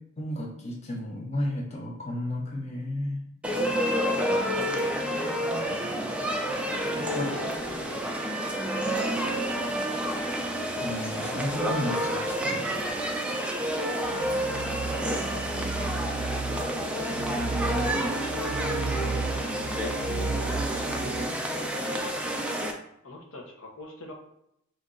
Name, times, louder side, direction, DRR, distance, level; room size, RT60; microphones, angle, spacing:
voice 1, 0.2-3.2 7.0-7.4 10.8-12.9, left 1 dB, 30° left, -2 dB, 0.8 m, -33 dB
sound 1, 3.4-22.7, equal, 5° right, 0.4 m, -29 dB
voice 2, 4.2-4.9 6.7-8.2 14.1-14.4 14.9-16.0 17.8-18.3 19.9-20.3 23.0-24.1, left 3 dB, 75° left, 1 dB, 1.0 m, -44 dB
sound 2, 14.0-21.3, right 4 dB, 65° right, 0.4 m, -34 dB
4.5 x 2.7 x 3.7 m, 0.77 s
head